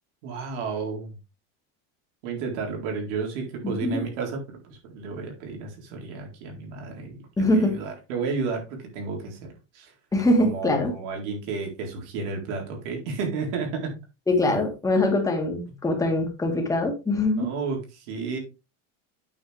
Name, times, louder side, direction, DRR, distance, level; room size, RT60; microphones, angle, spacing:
voice 1, 0.2-1.1 2.2-9.9 10.4-14.0 17.4-18.4, right 4 dB, 80° right, 1 dB, 4.1 m, -32 dB
voice 2, 3.6-4.0 7.4-7.8 10.1-11.0 14.3-17.5, left 2 dB, 10° left, 2 dB, 2.2 m, -23 dB
8.8 x 6.8 x 3.4 m, 0.28 s
cardioid pair, 155°, 35 cm